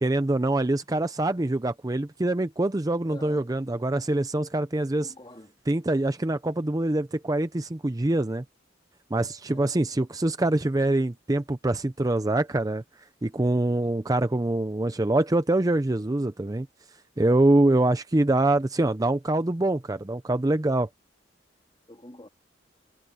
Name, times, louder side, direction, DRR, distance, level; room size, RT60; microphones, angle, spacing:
voice 1, 0.0-5.1 5.7-8.4 9.1-12.8 13.2-16.7 17.2-20.9, right 2 dB, 20° right, 0.5 m, -24 dB
voice 2, 3.1-3.4 5.0-5.6 9.5-9.8 21.9-22.3, left 1 dB, 25° left, 3.5 m, -47 dB
head